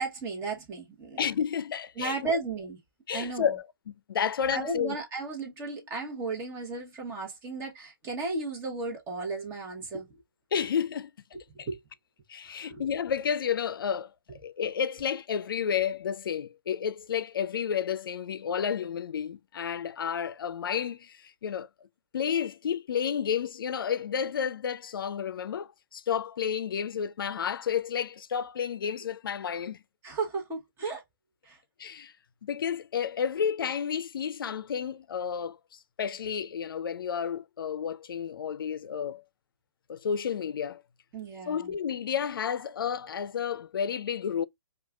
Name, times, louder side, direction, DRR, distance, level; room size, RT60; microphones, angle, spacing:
voice 1, 0.0-1.2 2.0-2.8 3.1-3.5 4.5-10.1 11.5-11.8 12.5-12.8 30.0-31.0 31.4-31.6 41.1-41.7, right 3 dB, 20° right, 1.1 m, -34 dB
voice 2, 1.2-2.2 3.1-5.0 10.5-11.1 11.6-11.7 12.3-21.7 22.1-29.8 31.8-32.1 32.4-35.6 36.0-39.2 39.9-40.8 41.5-44.4, left 7 dB, 75° left, 0.4 m, -31 dB
4.6 x 2.3 x 2.3 m
hypercardioid pair, 140°, 12 cm